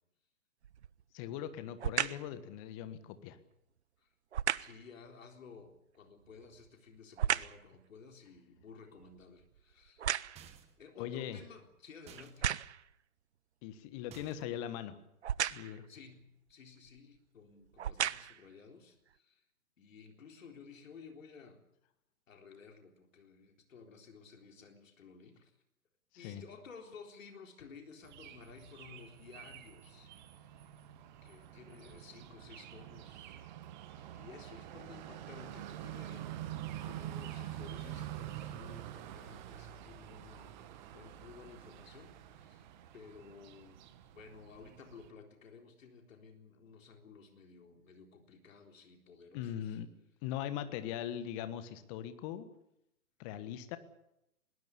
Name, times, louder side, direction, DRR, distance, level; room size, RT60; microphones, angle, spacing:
sound 1, 0.6-1.0 1.8-2.3 4.3-4.8 6.2-7.7 8.1-10.6 11.3-11.4 12.2-12.9 15.2-15.8 16.8-17.0 17.7-18.5 19.1-19.2, right 9 dB, 50° right, 0.7 m, -35 dB
voice 1, 1.1-3.4 11.0-11.4 13.6-15.0 15.5-15.9 26.2-26.4 49.3-49.9 50.2-52.5 53.2-53.8, left 10 dB, 20° left, 12 dB, 1.5 m, -40 dB
voice 2, 4.6-10.0 10.8-12.5 15.6-19.4 19.8-21.6 22.3-25.5 26.1-30.1 31.2-33.4 34.0-40.6 40.9-42.6 42.9-49.8, left 5 dB, 60° left, 4 dB, 4.0 m, -55 dB
sound 2, 10.4-10.9 12.1-12.4 14.1-14.6, right 8 dB, 15° right, 1.6 m, -55 dB
sound 3, 28.0-45.1, right 12 dB, 30° right, 1.7 m, -47 dB
21.5 x 19.0 x 8.5 m, 0.84 s
figure-of-eight pair, 135°, 45 cm